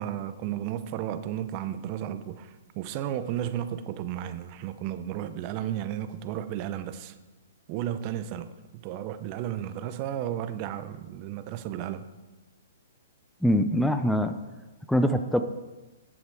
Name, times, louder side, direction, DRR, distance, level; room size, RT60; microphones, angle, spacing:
voice 1, 0.0-7.1 7.7-12.1, right 11 dB, 40° right, 0.6 m, -33 dB
voice 2, 13.4-14.3 14.9-15.4, equal, ahead, 0.5 m, -23 dB
9.9 x 7.3 x 4.8 m
hypercardioid pair, 130°, 0 cm